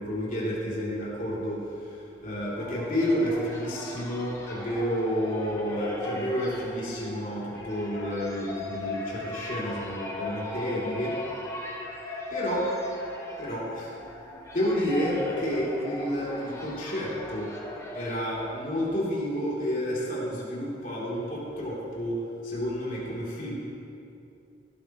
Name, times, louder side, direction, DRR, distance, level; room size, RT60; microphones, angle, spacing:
voice 1, 0.0-11.2 12.3-12.7 13.4-13.9 14.5-17.5 17.9-23.5, equal, 45° left, -7 dB, 3.4 m, -30 dB
sound 1, 2.1-19.1, left 1 dB, 15° left, 1.4 m, -38 dB
17.5 x 13.0 x 3.2 m, 2.7 s
head